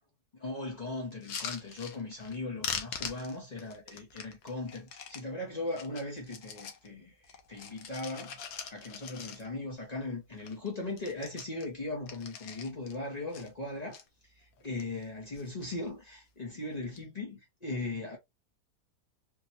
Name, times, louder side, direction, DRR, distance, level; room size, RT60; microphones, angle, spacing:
voice 1, 0.3-8.4 8.7-18.2, left 2 dB, 50° left, 0.5 m, -38 dB
sound 1, 1.1-2.4 2.6-5.3 5.7-6.9 7.2-9.7 10.1-10.2 10.4-10.7 10.9-13.0 13.3-14.0 14.6-15.1 15.3-15.9 16.7-17.0, left 7 dB, 80° left, 1.3 m, -42 dB
3.8 x 2.0 x 2.7 m
omnidirectional pair, 1.6 m